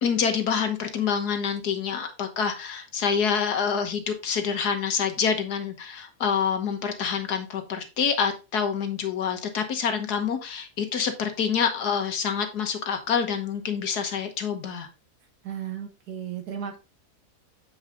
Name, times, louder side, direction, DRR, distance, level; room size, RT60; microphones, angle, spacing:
voice 1, 0.0-14.9, left 6 dB, 90° left, 6 dB, 1.8 m, -27 dB
voice 2, 15.4-16.8, right 9 dB, 85° right, 3 dB, 1.6 m, -34 dB
8.0 x 4.8 x 3.6 m, 0.28 s
omnidirectional pair, 1.6 m